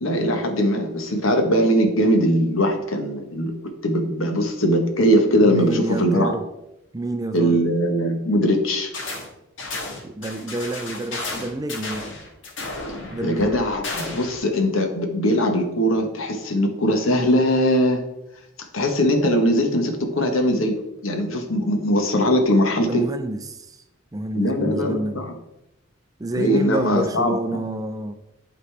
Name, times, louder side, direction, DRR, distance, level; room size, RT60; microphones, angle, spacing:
voice 1, 0.0-3.5 3.8-6.3 7.3-8.9 13.2-18.0 18.7-20.8 21.0-23.0 24.3-25.3 26.3-27.6, equal, 85° left, 4 dB, 1.1 m, -20 dB
voice 2, 5.4-6.4 6.9-7.6 10.0-12.1 13.1-13.6 22.8-23.8 24.1-25.2 26.2-28.2, right 2 dB, 20° right, 9 dB, 0.4 m, -28 dB
sound 1, 8.9-9.3 9.6-14.4, left 2 dB, 65° left, 1.4 m, -33 dB
11.0 x 4.1 x 3.3 m, 0.90 s
head